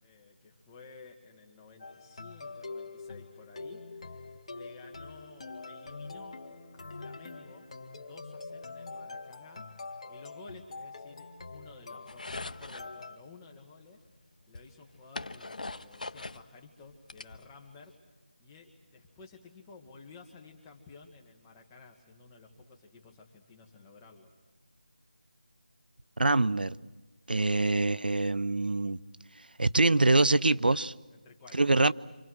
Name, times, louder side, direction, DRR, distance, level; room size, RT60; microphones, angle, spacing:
voice 1, 0.0-6.4 6.7-7.7 8.0-9.7 10.1-14.0 14.5-24.3 31.1-31.7, left 4 dB, 10° left, 1.6 m, -53 dB
sound 1, 1.8-13.2, left 3 dB, 40° left, 1.9 m, -44 dB
sound 2, 12.1-12.9 14.0-14.1 14.5-16.4 16.8-17.9, left 2 dB, 60° left, 1.1 m, -41 dB
voice 2, 26.2-26.8 27.3-29.0 29.4-30.9 31.5-31.9, right 2 dB, 80° right, 0.9 m, -25 dB
29.5 x 27.0 x 6.4 m
figure-of-eight pair, 170°, 5 cm